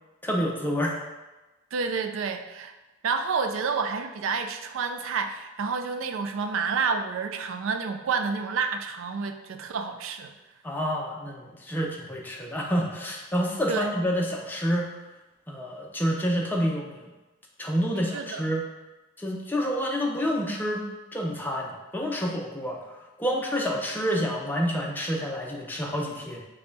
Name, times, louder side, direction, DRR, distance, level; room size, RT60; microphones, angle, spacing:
voice 1, 0.2-1.0 10.6-14.9 15.5-17.0 17.6-18.6 19.2-20.8 21.1-22.8 23.2-26.4, equal, 10° left, -1 dB, 0.6 m, -28 dB
voice 2, 1.7-2.7 3.0-10.3 13.7-13.9 18.1-18.4, right 5 dB, 85° right, 6 dB, 0.4 m, -29 dB
5.2 x 2.3 x 3.9 m, 1.1 s
head